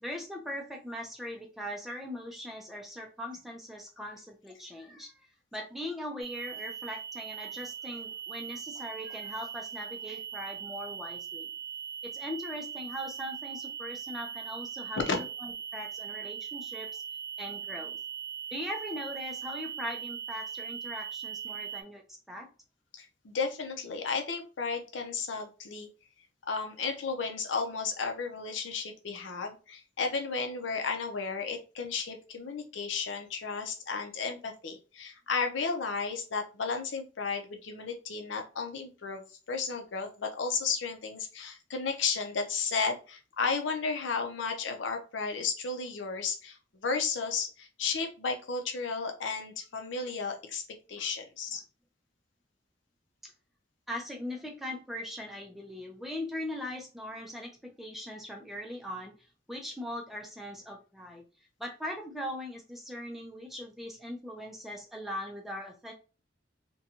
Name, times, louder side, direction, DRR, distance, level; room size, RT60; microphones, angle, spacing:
voice 1, 0.0-5.1 5.5-11.5 12.1-17.0 17.4-18.0 18.5-22.0 22.3-22.5 53.2-53.3 53.9-59.2 59.5-61.2 61.6-65.9, left 1 dB, ahead, 1 dB, 0.4 m, -40 dB
sound 1, 6.2-21.8, right 8 dB, 75° right, 0.6 m, -40 dB
voice 2, 22.9-25.9 26.5-50.6 50.9-51.6, left 4 dB, 90° left, 5 dB, 0.6 m, -33 dB
2.6 x 2.2 x 2.8 m, 0.34 s
head